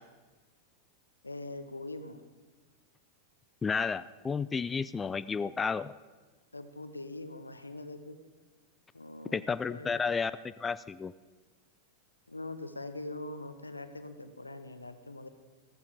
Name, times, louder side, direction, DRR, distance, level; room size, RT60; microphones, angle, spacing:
voice 1, 1.2-2.2 6.5-8.2 8.9-9.4 9.7-10.0 12.3-15.3, left 2 dB, 80° left, 10 dB, 1.0 m, -42 dB
voice 2, 3.6-5.9 9.3-10.3 10.6-11.1, left 5 dB, 15° left, 16 dB, 0.3 m, -31 dB
15.0 x 14.0 x 5.1 m, 1.3 s
figure-of-eight pair, 90°, 0 cm